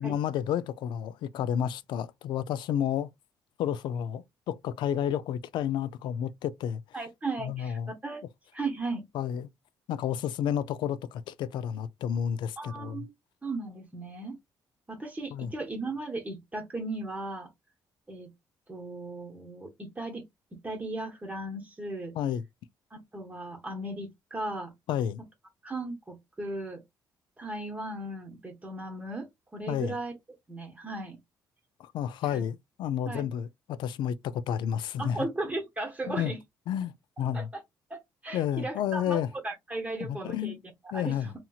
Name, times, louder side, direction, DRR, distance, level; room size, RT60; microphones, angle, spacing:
voice 1, 0.0-3.1 3.6-6.8 7.4-7.9 9.1-9.5 9.9-13.1 15.3-15.5 22.1-22.4 24.9-25.2 29.7-30.0 31.8-35.3 36.1-36.3 36.7-37.5 38.3-39.3 40.0-40.6 40.9-41.3, left 9 dB, 80° left, 0.4 m, -31 dB
voice 2, 6.9-8.2 8.5-9.0 12.6-13.1 13.4-14.4 14.9-17.5 18.1-18.3 18.7-20.2 20.6-22.1 22.9-24.7 25.6-26.8 27.4-29.3 29.5-30.1 30.5-31.2 32.2-32.4 33.1-33.2 35.0-36.4 37.3-37.6 37.9-40.5 40.8-41.3, right 2 dB, 20° right, 0.8 m, -36 dB
2.8 x 2.8 x 2.3 m
cardioid pair, 100°, 8 cm